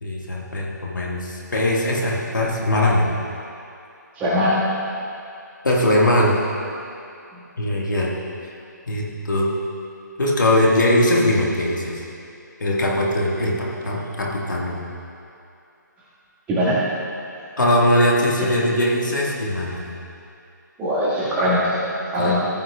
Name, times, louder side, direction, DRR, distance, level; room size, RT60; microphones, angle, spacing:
voice 1, 0.0-3.1 5.6-6.4 7.6-8.1 8.9-9.5 10.2-12.1 12.6-14.8 17.6-19.9 22.1-22.3, left 1 dB, 75° left, -3 dB, 1.9 m, -20 dB
voice 2, 4.2-4.6 16.5-16.9 20.8-21.8 22.1-22.4, equal, 15° right, -8 dB, 1.9 m, -20 dB
14.5 x 9.5 x 2.5 m, 2.6 s
figure-of-eight pair, 145°, 10 cm